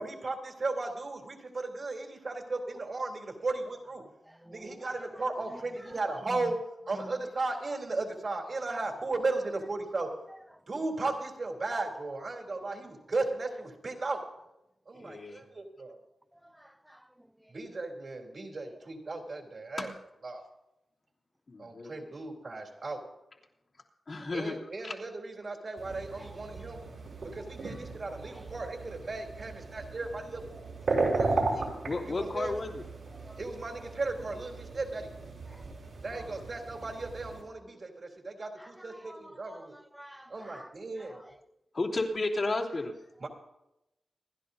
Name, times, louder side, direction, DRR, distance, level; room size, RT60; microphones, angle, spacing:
voice 1, 0.0-4.0 4.5-6.6 6.9-10.1 10.7-14.2 14.9-16.0 17.5-19.9 20.2-20.4 21.6-23.0 24.3-26.8 27.3-31.7 32.1-32.5 33.4-35.1 36.0-39.8 40.3-41.2 43.2-43.3, right 3 dB, 60° right, 3.4 m, -36 dB
voice 2, 4.3-4.9 5.2-5.3 5.5-6.0 6.9-7.1 16.4-17.0 26.2-26.6 27.6-27.8 28.2-28.4 33.2-33.4 35.5-35.6 38.6-41.3, equal, 5° right, 0.4 m, -50 dB
voice 3, 15.0-15.4 19.8-19.9 21.5-21.9 24.1-24.9 31.8-32.8 36.1-36.4 41.1-41.2 41.7-42.9, left 2 dB, 60° left, 3.0 m, -33 dB
sound 1, 25.8-37.4, right 3 dB, 80° right, 6.1 m, -36 dB
28.0 x 11.5 x 2.8 m
cardioid pair, 55°, 0 cm